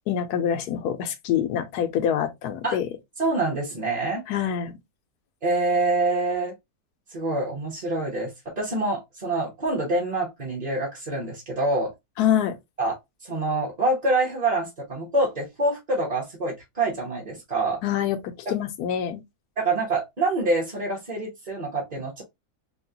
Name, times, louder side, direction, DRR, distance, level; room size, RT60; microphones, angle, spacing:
voice 1, 0.1-2.9 4.3-4.7 12.2-12.6 17.8-19.2, left 9 dB, 90° left, 1.2 m, -25 dB
voice 2, 3.2-4.2 5.4-6.5 7.1-11.9 12.8-12.9 13.2-17.8 19.6-22.2, right 2 dB, 30° right, 0.9 m, -26 dB
3.6 x 2.3 x 2.7 m
omnidirectional pair, 1.6 m